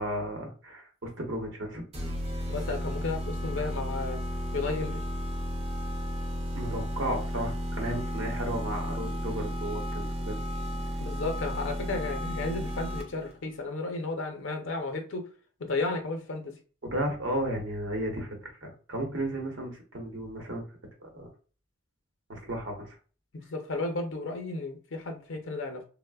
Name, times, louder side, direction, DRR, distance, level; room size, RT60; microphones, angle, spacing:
voice 1, 0.0-1.8 6.5-10.4 16.8-20.6 21.0-21.3 22.3-23.0, right 1 dB, 60° right, 0.8 m, -34 dB
sound 1, 1.9-13.3, equal, 30° right, 0.5 m, -33 dB
voice 2, 2.5-4.2 4.5-5.0 11.0-15.3 15.6-16.6 23.3-25.8, left 3 dB, 65° left, 0.6 m, -33 dB
3.2 x 2.0 x 2.2 m
head